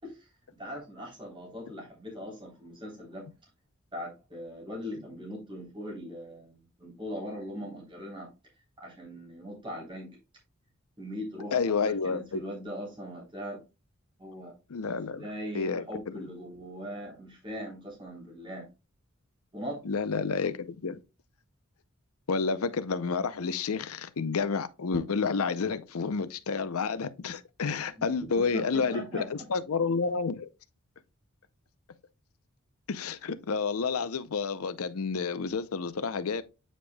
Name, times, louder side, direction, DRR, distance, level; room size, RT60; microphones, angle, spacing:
voice 1, 0.0-3.3 3.9-8.3 8.8-10.2 11.0-13.6 14.2-14.5 14.9-18.7 19.5-19.8 28.0-28.1 28.4-29.5, equal, 25° right, 3.3 m, -40 dB
voice 2, 11.5-12.4 14.7-15.3 15.5-15.8 16.1-16.3 19.8-21.0 22.3-30.5 32.9-36.4, left 5 dB, 85° left, 0.6 m, -30 dB
8.7 x 5.2 x 2.2 m
head